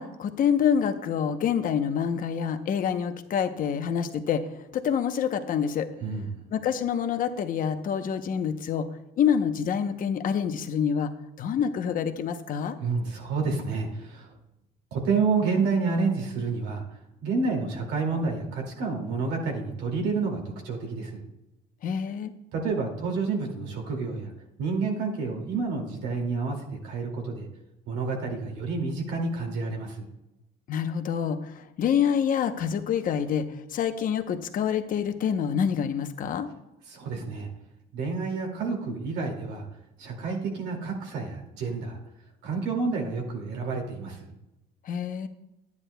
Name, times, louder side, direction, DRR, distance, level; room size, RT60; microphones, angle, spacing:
voice 1, 0.0-4.4 4.7-5.9 6.5-8.9 9.2-11.1 11.4-12.8 21.8-22.3 30.7-33.4 33.7-36.5 44.9-45.3, left 8 dB, 55° left, 8 dB, 0.8 m, -27 dB
voice 2, 12.8-14.3 14.9-16.8 17.2-21.2 22.5-24.3 24.6-27.5 27.9-30.1 36.9-37.5 37.9-39.7 40.0-42.0 42.4-44.3, right 4 dB, 85° right, 1 dB, 2.3 m, -29 dB
11.0 x 9.6 x 2.2 m, 0.94 s
cardioid pair, 110°, 17 cm